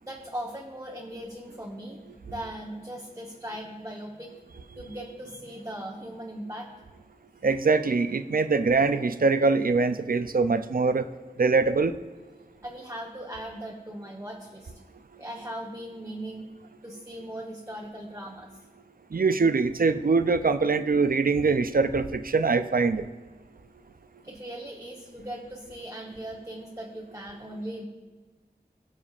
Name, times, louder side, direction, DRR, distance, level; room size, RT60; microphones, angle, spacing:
voice 1, 0.0-4.4 4.8-6.7 7.3-7.4 12.6-14.7 15.2-16.5 16.8-18.5 24.2-27.8, right 1 dB, 20° right, -1 dB, 1.0 m, -39 dB
voice 2, 7.4-11.1 11.4-12.0 19.1-23.0, right 4 dB, 65° right, 11 dB, 0.5 m, -23 dB
17.5 x 7.1 x 2.5 m, 1.3 s
wide cardioid pair, 40°, 16 cm